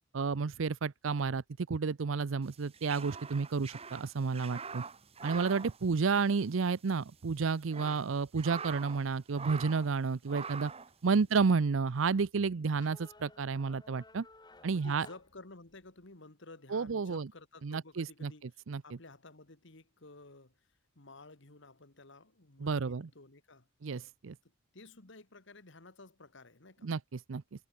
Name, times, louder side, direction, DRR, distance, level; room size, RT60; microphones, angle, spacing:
voice 1, 0.1-1.4 1.7-4.8 5.2-10.7 11.0-14.3 14.6-15.1 16.7-17.3 17.6-18.3 18.7-18.8 22.6-23.1 23.8-24.4 26.8-27.0 27.3-27.4, right 5 dB, 75° right, 0.6 m, -31 dB
sound 1, 2.5-6.6 6.8-7.0 7.5-9.1 9.3-9.9 10.3-10.9, right 5 dB, 30° right, 1.2 m, -44 dB
sound 2, 11.7-16.0, left 3 dB, 20° left, 2.9 m, -58 dB
voice 2, 14.7-20.7 21.0-23.7 24.4-26.9, left 2 dB, 65° left, 2.1 m, -54 dB
head